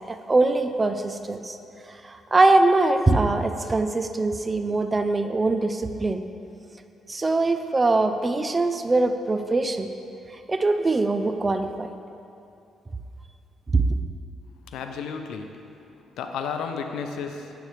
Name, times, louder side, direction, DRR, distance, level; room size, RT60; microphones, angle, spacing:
voice 1, 0.1-1.6 2.0-6.2 7.1-9.9 10.5-11.9 13.7-13.8, right 2 dB, 25° right, 8 dB, 0.5 m, -22 dB
voice 2, 14.7-15.5 16.2-17.5, left 6 dB, 85° left, 5 dB, 0.6 m, -32 dB
9.2 x 8.1 x 3.3 m, 2.6 s
cardioid pair, 90°, 0 cm